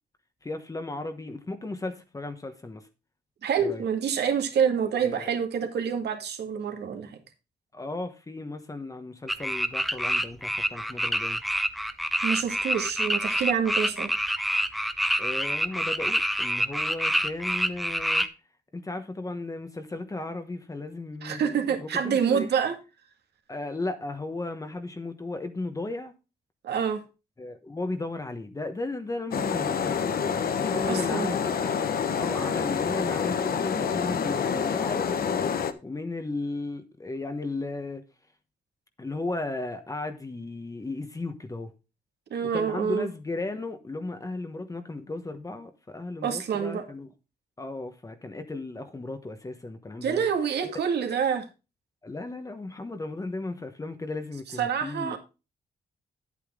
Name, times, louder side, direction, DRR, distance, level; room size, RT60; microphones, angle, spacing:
voice 1, 0.4-2.9 3.6-3.8 5.0-5.4 7.7-11.4 15.2-18.3 18.7-22.5 23.5-26.1 27.4-31.7 32.2-38.0 39.0-41.7 42.5-47.1 47.6-50.2 52.0-55.2, left 2 dB, 20° left, 1.1 m, -35 dB
voice 2, 3.4-7.2 12.2-14.1 21.2-22.7 26.6-27.0 30.9-31.4 42.3-43.1 46.2-46.8 50.0-51.5 54.6-55.2, right 7 dB, 80° right, 2.0 m, -27 dB
sound 1, 9.3-18.3, equal, ahead, 0.7 m, -27 dB
sound 2, 29.3-35.7, left 6 dB, 60° left, 1.0 m, -27 dB
10.0 x 8.4 x 3.6 m
cardioid pair, 115°, 17 cm